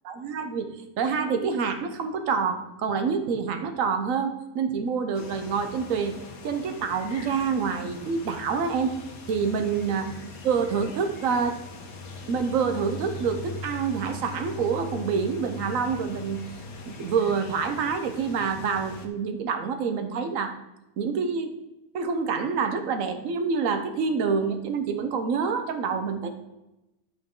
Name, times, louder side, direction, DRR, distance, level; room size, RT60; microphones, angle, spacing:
voice 1, 0.1-0.7 1.0-6.1 6.4-9.0 9.3-10.1 10.4-11.6 12.3-16.4 16.8-20.6 21.0-21.5 21.9-26.3, right 5 dB, 65° right, 8 dB, 1.2 m, -27 dB
sound 1, 5.1-19.1, left 4 dB, 75° left, 1.5 m, -41 dB
11.5 x 5.4 x 3.7 m, 0.95 s
omnidirectional pair, 1.6 m